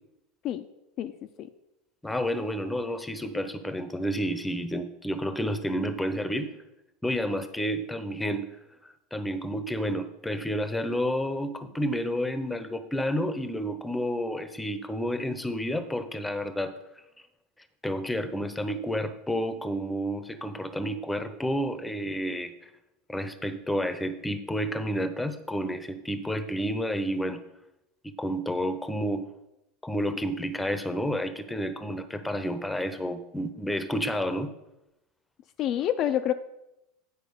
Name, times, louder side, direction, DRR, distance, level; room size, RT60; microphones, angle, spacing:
voice 1, 2.0-6.5 7.0-8.5 9.1-16.7 17.8-22.7 23.1-27.4 28.0-29.3 29.8-34.5, equal, 5° left, 10 dB, 0.8 m, -30 dB
voice 2, 35.6-36.3, left 11 dB, 45° left, 8 dB, 0.4 m, -27 dB
9.3 x 4.6 x 6.7 m, 0.89 s
supercardioid pair, 120°, 0 cm